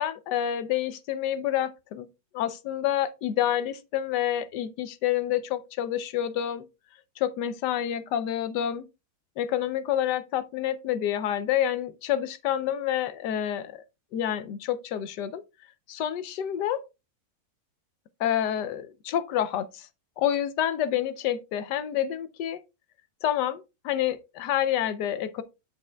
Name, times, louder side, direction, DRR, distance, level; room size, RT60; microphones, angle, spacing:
voice 1, 0.0-2.1 2.3-6.7 7.2-8.9 9.4-13.8 14.1-15.4 15.9-16.8 18.2-19.9 20.2-22.6 23.2-25.4, left 11 dB, 70° left, 1.3 m, -28 dB
8.9 x 7.5 x 2.3 m
omnidirectional pair, 1.9 m